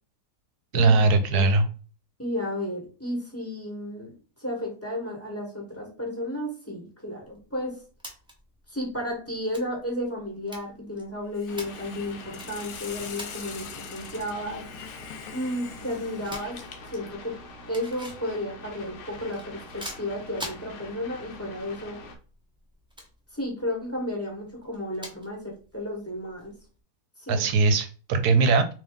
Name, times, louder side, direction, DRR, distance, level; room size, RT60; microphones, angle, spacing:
voice 1, 0.7-1.7 27.3-28.7, right 3 dB, 75° right, 9 dB, 1.1 m, -20 dB
voice 2, 2.2-4.1 4.4-7.7 8.7-14.6 15.3-16.6 16.9-17.3 17.7-22.0 23.3-26.5 27.2-27.4, left 1 dB, 10° left, -2 dB, 1.1 m, -33 dB
sound 1, 7.2-26.8, equal, 5° right, 0.4 m, -47 dB
Hiss, 11.3-17.2, left 7 dB, 80° left, 1.2 m, -43 dB
sound 2, 11.5-22.2, left 2 dB, 60° left, 0.9 m, -44 dB
3.7 x 2.8 x 3.5 m, 0.38 s
omnidirectional pair, 1.7 m